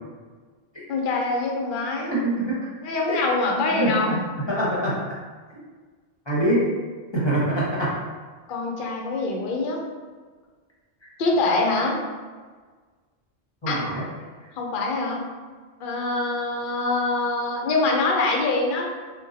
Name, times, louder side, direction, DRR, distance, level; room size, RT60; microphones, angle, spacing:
voice 1, 0.9-2.1 2.8-4.2 8.5-9.8 11.2-12.0 13.7-13.8 14.6-15.2 15.8-18.9, left 3 dB, 60° left, 0 dB, 0.6 m, -24 dB
voice 2, 2.1-2.5 3.1-3.2 3.7-4.2 4.5-4.9 6.3-6.7 7.1-8.0 13.6-14.0, right 1 dB, 25° left, -8 dB, 0.8 m, -24 dB
3.8 x 2.2 x 2.6 m, 1.5 s
omnidirectional pair, 1.2 m